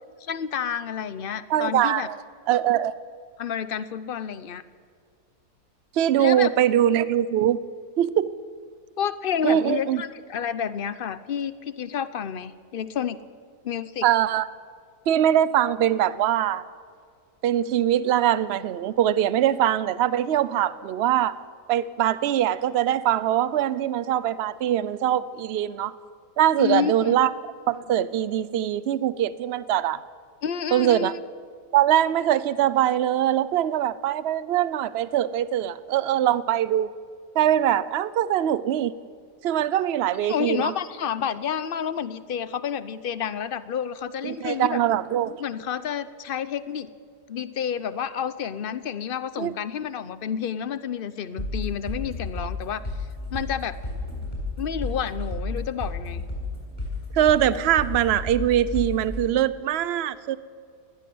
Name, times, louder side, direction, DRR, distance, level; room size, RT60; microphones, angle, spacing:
voice 1, 0.2-2.1 3.4-4.6 6.2-6.5 9.0-13.2 13.6-14.1 26.6-27.2 30.4-31.2 40.3-44.8 45.4-46.9 47.3-52.8 53.3-53.7 54.6-56.2, left 8 dB, 60° left, 14 dB, 0.6 m, -29 dB
voice 2, 1.5-2.2 2.5-3.0 5.9-7.6 8.0-8.4 9.4-10.0 14.0-14.5 15.1-16.6 17.4-21.3 21.7-25.9 26.4-27.3 27.7-30.0 30.7-31.1 31.7-36.9 37.3-38.9 39.4-40.7 44.2-45.4 49.4-49.5 57.1-60.4, right 11 dB, 60° right, 16 dB, 0.7 m, -22 dB
sound 1, 51.4-59.2, left 2 dB, 25° left, 7.4 m, -32 dB
20.5 x 16.5 x 7.8 m, 2.1 s
omnidirectional pair, 1.8 m